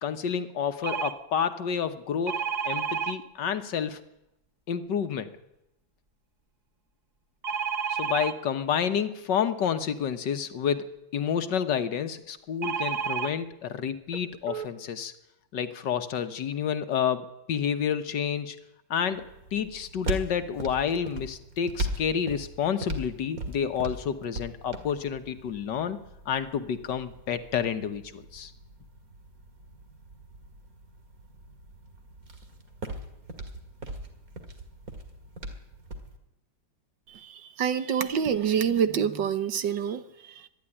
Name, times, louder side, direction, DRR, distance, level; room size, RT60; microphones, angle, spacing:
voice 1, 0.0-4.0 4.7-5.3 7.9-15.1 15.5-18.6 18.9-19.2 19.5-26.0 26.2-28.5, left 7 dB, 65° left, 9 dB, 1.7 m, -29 dB
sound 1, 0.8-1.1 2.3-3.1 7.4-8.3 12.6-13.3 14.1-14.2 14.5-14.7, right 6 dB, 30° right, 1.0 m, -30 dB
sound 2, 19.1-36.2, right 1 dB, 50° right, 2.5 m, -40 dB
voice 2, 37.1-40.5, right 8 dB, 70° right, 11 dB, 1.7 m, -27 dB
24.5 x 11.0 x 10.0 m, 0.88 s
omnidirectional pair, 2.1 m